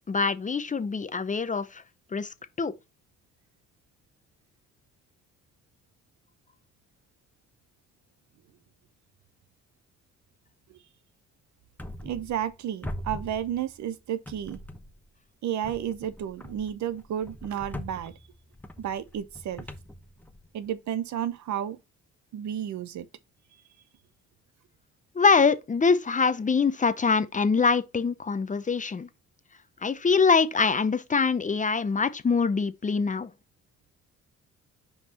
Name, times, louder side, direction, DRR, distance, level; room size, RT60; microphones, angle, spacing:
voice 1, 0.1-1.8 2.1-2.7 25.1-29.1 29.8-33.3, left 5 dB, 25° left, 0.7 m, -24 dB
sound 1, 11.8-12.6 12.8-13.9 14.3-15.1 15.6-20.7, left 1 dB, 5° left, 1.0 m, -42 dB
voice 2, 12.0-14.6 15.4-18.1 18.8-19.6 20.5-21.8 22.3-23.1, right 10 dB, 70° right, 0.9 m, -32 dB
5.4 x 4.9 x 4.2 m
cardioid pair, 90°, 30 cm